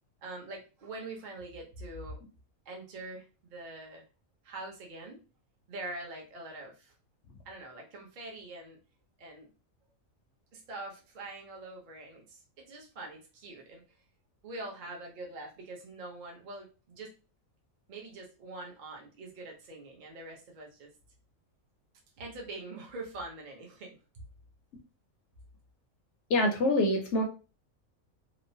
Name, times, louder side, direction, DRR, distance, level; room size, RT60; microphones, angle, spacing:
voice 1, 0.2-2.2 2.7-4.0 4.4-5.2 5.7-6.9 7.4-8.8 9.2-9.5 10.5-14.0 14.4-17.1 17.9-20.9 22.2-24.0, right 2 dB, 45° right, 0 dB, 0.7 m, -44 dB
voice 2, 26.3-27.2, left 1 dB, 65° left, 3 dB, 0.8 m, -25 dB
3.0 x 2.0 x 2.6 m, 0.32 s
omnidirectional pair, 1.4 m